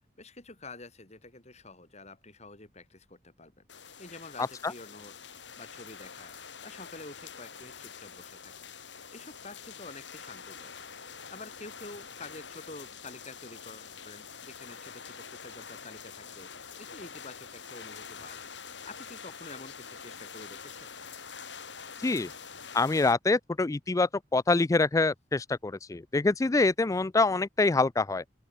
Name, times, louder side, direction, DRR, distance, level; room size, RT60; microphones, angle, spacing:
voice 1, 0.2-3.6 4.0-5.1 5.6-10.7 11.1-16.5 16.8-20.9, left 3 dB, 40° left, 5.4 m, -48 dB
sound 1, 3.7-23.1, left 6 dB, 85° left, 5.3 m, -46 dB
voice 2, 22.7-28.2, left 3 dB, 20° left, 0.4 m, -25 dB
open air
head